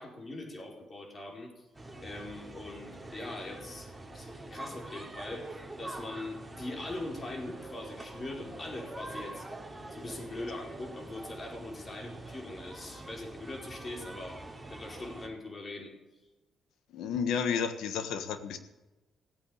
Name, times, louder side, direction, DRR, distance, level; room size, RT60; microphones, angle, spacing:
voice 1, 0.0-1.6 2.0-5.5 5.8-9.5 9.9-14.4 14.7-15.9, left 2 dB, 35° left, 2 dB, 4.6 m, -42 dB
sound 1, 1.7-15.3, right 2 dB, 10° right, 3.1 m, -45 dB
voice 2, 16.9-18.6, left 7 dB, 85° left, 10 dB, 1.4 m, -31 dB
17.0 x 8.6 x 8.6 m, 1.1 s
cardioid pair, 90°, 0 cm